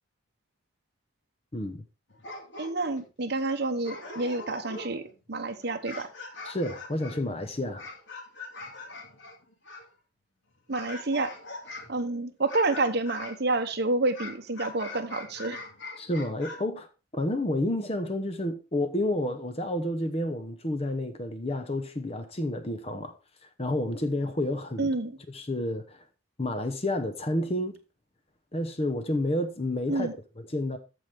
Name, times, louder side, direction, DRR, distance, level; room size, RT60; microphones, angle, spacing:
voice 1, 1.5-1.8 6.4-7.9 16.0-16.9 17.1-23.1 23.4-24.9 25.3-26.0 26.4-27.8 28.5-30.8, left 1 dB, 30° left, 0.8 m, -30 dB
sound 1, 2.1-3.0 3.5-3.6 3.8-5.1 5.6-9.9 10.7-12.0 12.5-13.4 14.1-16.6, left 2 dB, 60° left, 2.2 m, -42 dB
voice 2, 2.6-6.1 10.7-11.3 11.9-15.6 24.8-25.2 29.9-30.1, right 2 dB, 50° right, 1.0 m, -29 dB
14.0 x 4.9 x 3.5 m
head